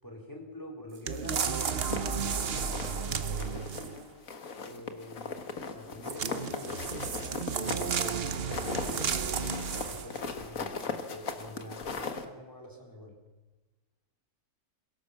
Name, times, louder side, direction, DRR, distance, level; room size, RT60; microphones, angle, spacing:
voice 1, 0.0-4.1 4.5-9.2 9.5-13.2, left 1 dB, 10° left, 0 dB, 4.2 m, -46 dB
sound 1, 1.1-4.0 6.0-10.2 10.8-10.9, right 6 dB, 45° right, 1.0 m, -33 dB
sound 2, 1.3-3.1 3.4-4.0 4.3-12.3, left 4 dB, 60° left, 2.0 m, -38 dB
23.0 x 17.0 x 7.2 m, 1.1 s
omnidirectional pair, 1.7 m